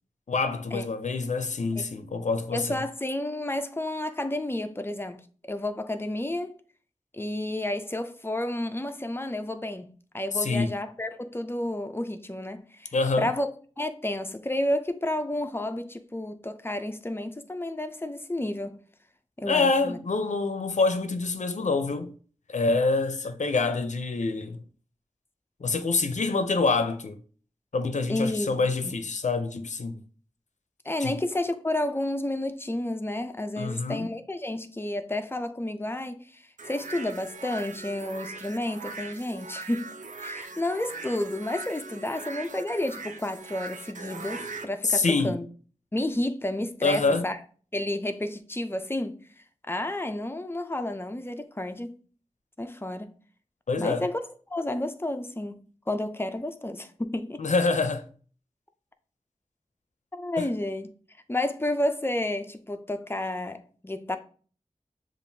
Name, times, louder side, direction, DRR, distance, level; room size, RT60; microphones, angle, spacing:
voice 1, 0.3-2.8 10.4-10.7 12.9-13.3 19.5-22.1 22.5-24.6 25.6-27.2 27.7-30.0 31.0-31.2 33.6-34.1 44.8-45.4 46.8-47.2 53.7-54.1 57.4-58.0 60.4-60.5, left 3 dB, 70° left, 0.5 m, -26 dB
voice 2, 2.5-5.2 5.5-6.5 7.1-13.5 13.8-18.8 19.4-20.0 28.1-29.0 30.8-39.9 40.2-45.5 45.9-47.4 47.7-49.2 49.7-52.0 52.6-53.1 53.8-54.2 54.5-57.5 60.1-60.9 61.3-64.2, left 1 dB, 20° left, 0.5 m, -31 dB
sound 1, 36.6-44.7, right 3 dB, 75° right, 0.5 m, -40 dB
7.1 x 2.5 x 2.7 m
wide cardioid pair, 60°, 13 cm